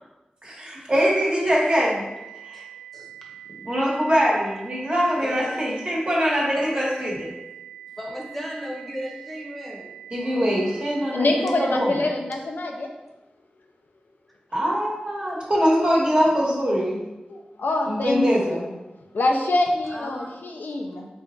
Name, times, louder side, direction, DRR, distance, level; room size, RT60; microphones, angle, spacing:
voice 1, 0.4-2.1 2.4-2.6 3.6-7.3 10.1-12.1 14.5-17.0 17.9-18.6, equal, 35° right, -5 dB, 1.5 m, -23 dB
sound 1, 2.0-12.0, right 11 dB, 25° left, 0.7 m, -43 dB
voice 2, 2.9-3.7 5.2-5.6 6.6-6.8 8.0-9.9 10.2-10.6 19.8-20.3, equal, 10° left, -2 dB, 1.0 m, -36 dB
voice 3, 11.1-12.9 17.3-18.7 19.1-21.1, left 2 dB, 85° left, 2 dB, 0.4 m, -25 dB
4.5 x 2.4 x 3.8 m, 1.0 s
wide cardioid pair, 55°, 3 cm